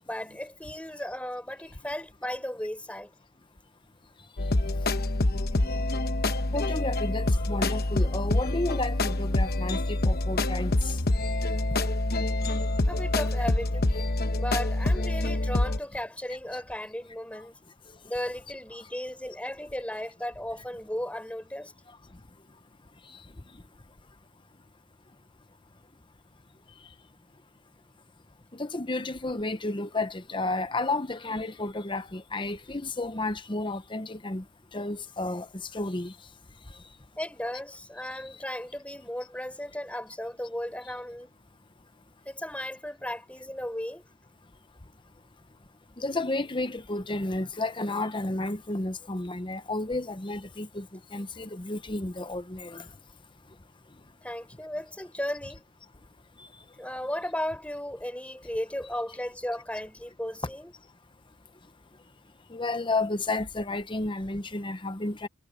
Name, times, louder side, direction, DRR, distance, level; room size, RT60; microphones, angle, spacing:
voice 1, 0.1-3.1 12.9-13.9 14.3-17.5 18.0-21.7 37.2-41.3 42.2-44.0 54.2-55.6 56.8-60.7, left 1 dB, 5° left, 5.0 m, -35 dB
sound 1, 4.4-15.8, left 2 dB, 45° left, 1.0 m, -26 dB
voice 2, 6.5-11.0 28.5-34.4 34.7-35.5 35.7-36.1 46.0-50.9 51.1-52.8 62.5-65.3, left 2 dB, 20° left, 0.8 m, -32 dB
head